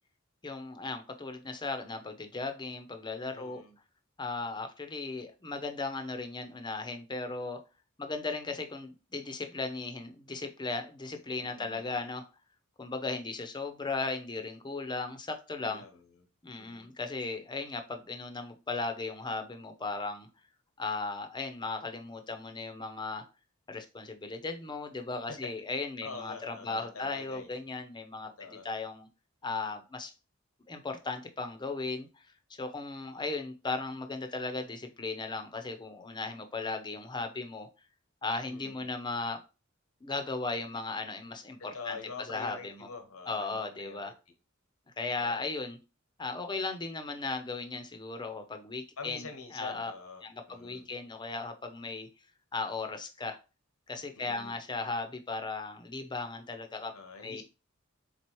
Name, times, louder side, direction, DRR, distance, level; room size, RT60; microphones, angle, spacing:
voice 1, 0.4-3.6 4.2-7.6 8.0-12.2 12.8-15.8 16.4-20.3 20.8-23.2 23.7-29.1 29.4-30.1 30.7-32.2 32.6-37.7 38.2-39.4 40.0-42.0 42.3-42.9 43.3-44.1 45.0-45.8 46.2-49.3 49.5-49.9 50.2-52.1 52.5-53.4 53.9-56.9 57.2-57.4, left 3 dB, 20° left, 0.6 m, -36 dB
voice 2, 3.3-3.7 11.4-11.8 15.6-16.0 16.6-16.9 26.0-27.5 28.4-28.6 38.5-38.8 41.7-44.1 45.1-45.4 49.0-50.9 54.1-54.6 56.9-57.4, left 4 dB, 90° left, 1.0 m, -45 dB
4.4 x 3.8 x 3.0 m
head